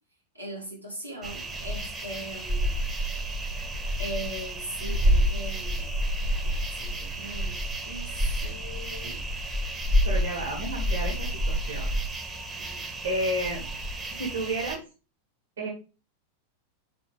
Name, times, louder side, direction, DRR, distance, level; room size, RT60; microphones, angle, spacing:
voice 1, 0.3-2.8 4.0-5.9 6.4-9.2 12.6-12.9, right 1 dB, 90° right, 2.4 m, -40 dB
sound 1, 1.2-14.8, equal, 15° right, 1.1 m, -29 dB
voice 2, 10.0-11.9 13.0-13.6 14.2-14.8 15.6-15.7, right 1 dB, 65° right, 2.2 m, -31 dB
7.4 x 4.4 x 3.4 m
figure-of-eight pair, 90°, 0 cm